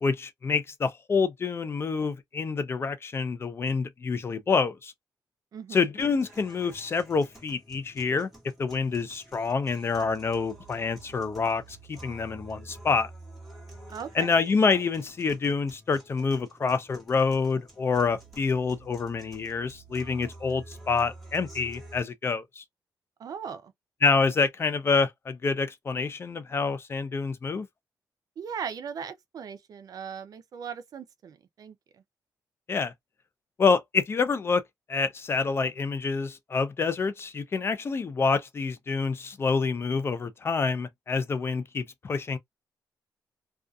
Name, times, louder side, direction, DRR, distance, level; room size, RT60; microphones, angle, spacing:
voice 1, 0.0-4.9 5.7-8.3 8.6-13.1 14.1-22.6 24.0-27.7 32.7-32.9 33.6-34.6 34.9-42.4, left 4 dB, 35° left, 0.4 m, -27 dB
sound 1, 6.0-22.0, right 2 dB, ahead, 1.2 m, -49 dB
voice 2, 13.9-14.3 23.2-23.7 28.4-31.8, right 7 dB, 60° right, 0.4 m, -38 dB
2.5 x 2.3 x 2.2 m
wide cardioid pair, 130°, 7 cm